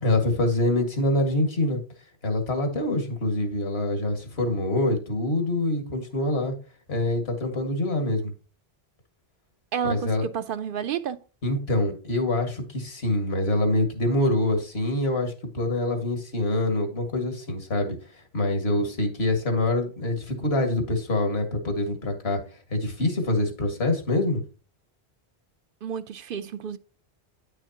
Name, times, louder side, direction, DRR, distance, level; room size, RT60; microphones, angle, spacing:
voice 1, 0.0-1.8 2.2-6.5 6.9-8.3 9.8-10.2 11.4-18.0 18.3-22.4 22.7-24.4, left 1 dB, 80° left, 2.0 m, -25 dB
voice 2, 9.7-11.2 25.8-26.8, right 8 dB, 65° right, 0.7 m, -30 dB
9.8 x 6.3 x 2.8 m
omnidirectional pair, 1.1 m